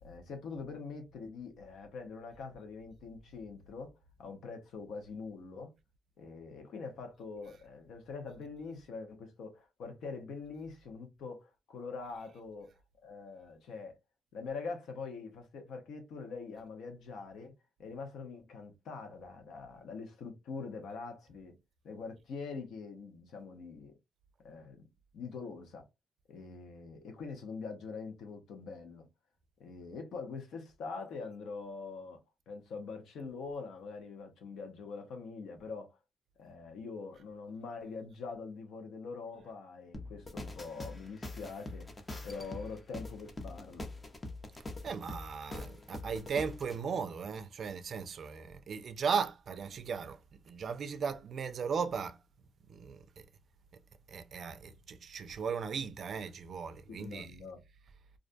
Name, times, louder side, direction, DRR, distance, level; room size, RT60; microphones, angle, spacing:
voice 1, 0.0-3.9 4.2-5.7 6.2-12.7 13.0-14.0 14.3-17.5 17.8-21.6 21.8-24.0 24.4-24.9 25.1-25.9 26.3-29.0 29.6-32.2 32.5-35.9 36.4-41.9 42.2-43.9 56.9-57.6, left 4 dB, 80° left, 0.8 m, -44 dB
sound 1, 39.9-46.8, left 2 dB, 25° left, 0.6 m, -44 dB
voice 2, 44.8-50.2 50.5-52.2 52.7-53.1 54.1-57.4, right 6 dB, 55° right, 0.4 m, -37 dB
2.5 x 2.2 x 2.5 m
cardioid pair, 100°, 0 cm